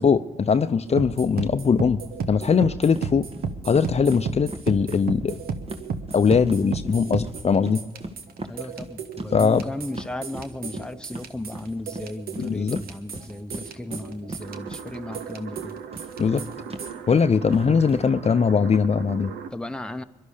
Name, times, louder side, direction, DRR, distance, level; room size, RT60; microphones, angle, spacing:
voice 1, 0.0-2.0 2.3-3.3 3.6-5.4 6.1-7.8 9.3-9.6 12.4-12.8 16.2-16.5 17.1-19.3, left 6 dB, 40° left, 10 dB, 0.7 m, -21 dB
sound 1, 0.9-16.9, right 5 dB, 70° right, 1.1 m, -34 dB
sound 2, 2.9-3.1 3.3-3.5 3.7-6.6 6.9-15.2 15.5-18.0, right 1 dB, 35° right, 1.7 m, -38 dB
voice 2, 8.4-15.8 17.5-17.7 19.5-20.0, left 1 dB, 5° left, 8 dB, 0.9 m, -35 dB
sound 3, 14.4-19.5, right 7 dB, 85° right, 0.8 m, -39 dB
22.0 x 11.5 x 5.0 m, 1.3 s
hypercardioid pair, 45°, 16 cm